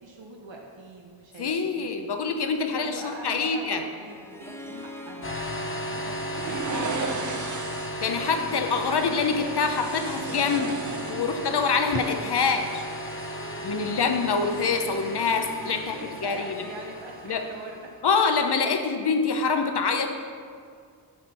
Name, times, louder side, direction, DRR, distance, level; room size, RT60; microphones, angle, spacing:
voice 1, 0.0-1.9 2.7-7.4 15.8-17.9, right 2 dB, 75° right, 0 dB, 0.9 m, -43 dB
voice 2, 1.4-3.8 4.7-4.8 6.7-7.3 8.0-10.8 11.1-12.8 13.6-15.9 16.2-16.7 17.2-17.4 18.0-20.1, left 5 dB, 60° left, 6 dB, 0.8 m, -25 dB
Harp, 4.1-18.6, equal, 5° left, 0.7 m, -44 dB
sound 1, 5.2-17.8, equal, 30° left, 0.9 m, -36 dB
sound 2, 6.4-8.0 9.6-11.5 11.8-12.0, right 5 dB, 45° right, 0.6 m, -34 dB
7.8 x 4.3 x 5.4 m, 2.2 s
wide cardioid pair, 60°, 45 cm